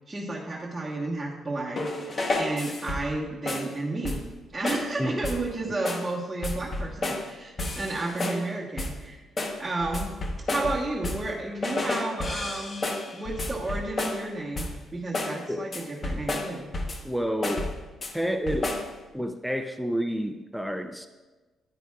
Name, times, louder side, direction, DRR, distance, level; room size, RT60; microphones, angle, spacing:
voice 1, 0.1-4.2 4.5-9.2 9.6-12.8 13.1-16.7, right 2 dB, 15° right, -6 dB, 1.2 m, -32 dB
sound 1, 1.8-3.2 3.5-3.7 4.0-4.4 4.6-4.9 5.2-5.5 5.8-6.1 6.4-7.3 7.6-8.5 8.8-9.0 9.4-11.3 11.6-14.3 14.6-14.9 15.1-15.4 15.7-17.1 17.4-18.1 18.5-18.9, left 2 dB, 40° left, 1.0 m, -31 dB
voice 2, 17.0-17.7 18.1-18.8 19.1-21.1, equal, ahead, 7 dB, 0.5 m, -29 dB
10.0 x 9.0 x 2.4 m, 1.2 s
cardioid pair, 90°, 0 cm